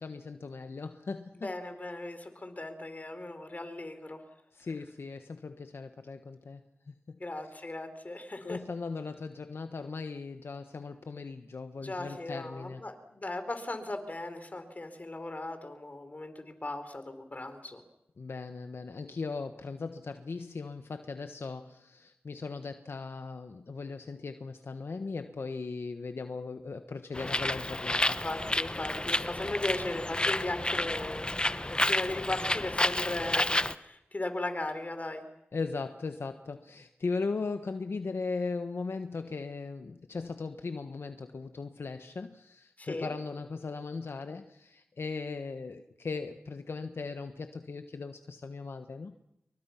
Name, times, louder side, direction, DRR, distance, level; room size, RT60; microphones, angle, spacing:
voice 1, 0.0-1.5 4.5-7.2 8.4-12.8 18.2-28.2 29.2-29.3 35.5-49.2, left 4 dB, 70° left, 8 dB, 1.3 m, -38 dB
voice 2, 1.4-4.2 7.2-8.6 11.8-17.8 28.2-31.3 31.6-35.2 42.8-43.1, left 2 dB, 40° left, 9 dB, 4.0 m, -37 dB
Bird, 27.1-33.7, left 1 dB, 25° left, 0.9 m, -30 dB
29.5 x 23.5 x 5.8 m, 0.82 s
cardioid pair, 50°, 4 cm